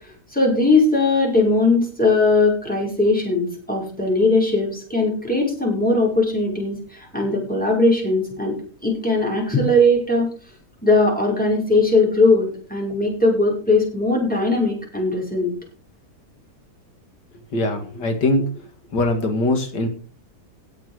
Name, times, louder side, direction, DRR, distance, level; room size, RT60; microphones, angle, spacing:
voice 1, 0.0-8.6 8.8-10.3 10.8-15.5, left 2 dB, 5° left, -2 dB, 5.6 m, -19 dB
voice 2, 17.5-18.5 18.9-19.9, left 2 dB, 90° left, 5 dB, 2.7 m, -21 dB
17.5 x 7.4 x 4.9 m, 0.40 s
omnidirectional pair, 1.8 m